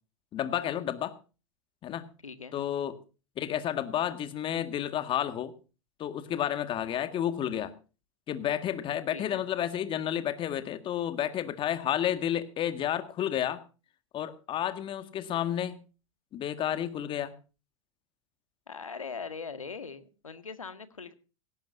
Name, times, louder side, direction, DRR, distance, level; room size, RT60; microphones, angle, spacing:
voice 1, 0.3-1.1 1.8-2.1 2.5-2.9 3.4-5.5 6.0-7.7 8.3-13.6 14.1-15.8 16.3-17.3, left 10 dB, 30° left, 11 dB, 1.8 m, -31 dB
voice 2, 2.2-2.6 9.1-9.4 18.7-21.1, left 5 dB, 85° left, 11 dB, 1.7 m, -41 dB
17.5 x 17.5 x 2.7 m, 0.34 s
figure-of-eight pair, 95°, 17 cm